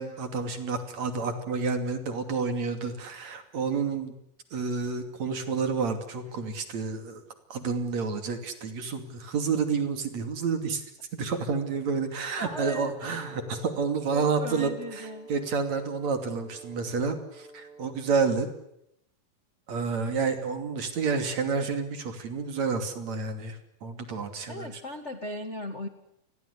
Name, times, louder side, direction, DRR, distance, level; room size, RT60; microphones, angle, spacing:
voice 1, 0.0-4.1 4.5-7.2 7.5-10.8 11.1-14.7 15.0-18.5 19.7-24.7, right 5 dB, 50° right, 8 dB, 3.7 m, -29 dB
voice 2, 12.3-13.2 14.1-15.3 20.0-20.2 24.5-25.9, left 1 dB, 40° left, 7 dB, 1.0 m, -38 dB
Brass instrument, 12.3-18.3, right 1 dB, ahead, 5.2 m, -47 dB
29.5 x 22.0 x 8.3 m, 0.77 s
omnidirectional pair, 4.4 m